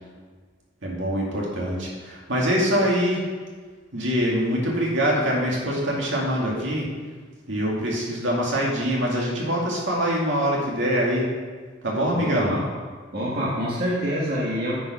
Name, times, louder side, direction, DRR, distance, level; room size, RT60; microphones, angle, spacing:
voice 1, 0.8-3.2 3.9-6.9 7.5-11.3 11.8-12.5, equal, 70° right, -3 dB, 2.3 m, -24 dB
voice 2, 12.1-12.6 13.1-14.8, equal, 50° right, -6 dB, 1.7 m, -26 dB
9.5 x 5.7 x 5.7 m, 1.5 s
head